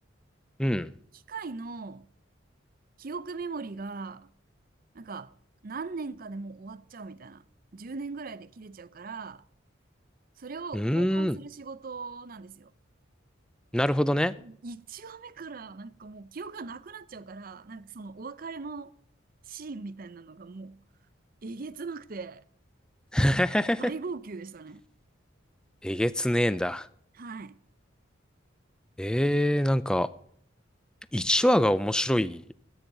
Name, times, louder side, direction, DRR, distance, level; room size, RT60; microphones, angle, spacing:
voice 1, 0.6-0.9 10.7-11.4 13.7-14.3 23.1-23.9 25.8-26.9 29.0-30.1 31.1-32.4, equal, 5° left, 0.4 m, -24 dB
voice 2, 1.3-2.1 3.0-4.3 4.9-5.4 5.6-7.4 7.7-9.4 10.4-12.7 14.4-18.9 19.5-20.8 21.4-22.4 23.8-24.8 27.1-27.6, right 4 dB, 45° right, 0.6 m, -40 dB
15.0 x 8.8 x 3.9 m
head